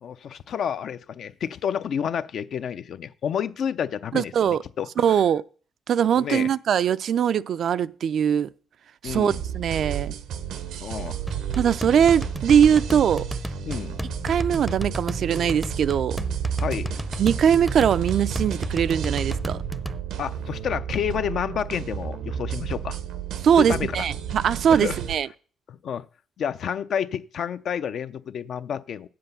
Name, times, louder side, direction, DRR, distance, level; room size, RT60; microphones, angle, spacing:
voice 1, 0.0-4.9 6.2-6.5 9.0-9.4 10.8-11.2 13.7-14.0 16.6-16.9 20.2-23.0 23.6-24.1 24.7-25.0 25.7-26.0 26.4-29.1, left 8 dB, 65° left, 0.5 m, -30 dB
voice 2, 4.1-4.6 5.0-5.4 5.9-8.5 9.0-10.1 11.6-13.3 14.2-16.2 17.2-19.6 23.4-25.3, right 8 dB, 65° right, 0.4 m, -21 dB
sound 1, 9.1-25.2, right 9 dB, 80° right, 0.8 m, -32 dB
sound 2, 11.3-20.0, right 1 dB, 5° right, 0.6 m, -33 dB
7.8 x 7.7 x 6.9 m
cardioid pair, 90°, 0 cm